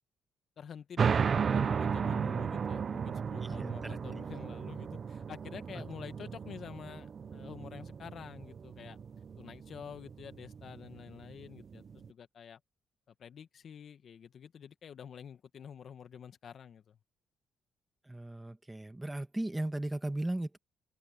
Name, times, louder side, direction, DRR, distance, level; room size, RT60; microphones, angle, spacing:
voice 1, 0.6-9.0 9.4-12.6 13.2-17.0, left 8 dB, 55° left, 1.5 m, -48 dB
sound 1, 1.0-12.1, right 6 dB, 45° right, 0.6 m, -34 dB
voice 2, 3.4-4.0 5.7-5.8 18.1-20.6, right 1 dB, 10° right, 1.7 m, -37 dB
open air
cardioid pair, 90°, 0 cm